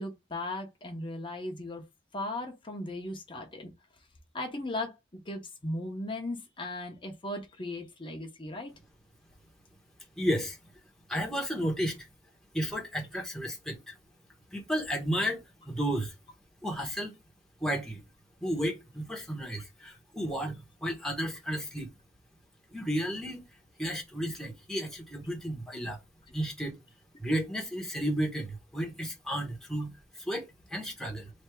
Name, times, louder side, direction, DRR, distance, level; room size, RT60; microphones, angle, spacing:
voice 1, 0.0-1.8 2.1-3.7 4.3-5.0 5.2-8.7, left 1 dB, 25° left, 0.9 m, -37 dB
voice 2, 10.2-10.6 11.1-12.1 12.5-13.9 14.5-16.1 16.6-17.1 17.6-18.0 18.4-21.9 22.7-23.4 23.8-26.0 26.3-26.8 27.2-31.3, equal, 5° left, 1.0 m, -33 dB
3.3 x 2.9 x 4.4 m
head